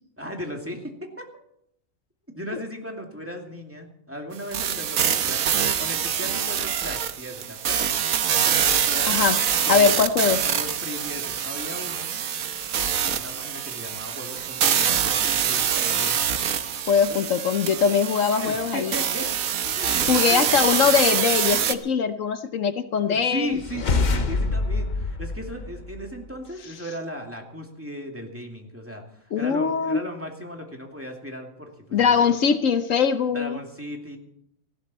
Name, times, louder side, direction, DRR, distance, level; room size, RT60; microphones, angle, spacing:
voice 1, 0.2-1.3 2.3-7.9 8.5-9.3 9.7-9.9 10.4-12.1 13.1-16.2 17.1-17.2 18.4-19.3 19.7-20.8 22.9-32.3 33.3-34.2, equal, 10° right, 1 dB, 2.4 m, -36 dB
sound 1, 4.5-21.8, right 8 dB, 80° right, 1.3 m, -25 dB
voice 2, 9.1-9.4 9.7-10.4 16.9-19.0 20.1-23.6 29.3-30.0 31.9-33.6, left 6 dB, 70° left, 10 dB, 1.2 m, -21 dB
sound 2, 23.5-26.3, left 3 dB, 40° left, 0.8 m, -26 dB
18.5 x 15.0 x 4.2 m, 0.72 s
omnidirectional pair, 1.4 m